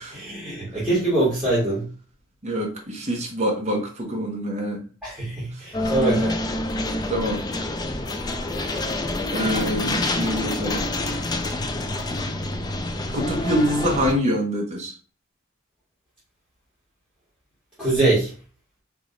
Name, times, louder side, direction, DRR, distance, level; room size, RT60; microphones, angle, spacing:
voice 1, 0.1-1.9 5.0-6.4 17.8-18.3, right 2 dB, 5° right, 1.8 m, -23 dB
voice 2, 2.4-4.8 6.0-6.3 7.1-7.4 9.3-10.9 13.1-14.9, equal, 35° right, 0.9 m, -25 dB
sound 1, 5.7-14.1, left 2 dB, 20° left, 0.4 m, -27 dB
4.7 x 3.0 x 2.5 m
head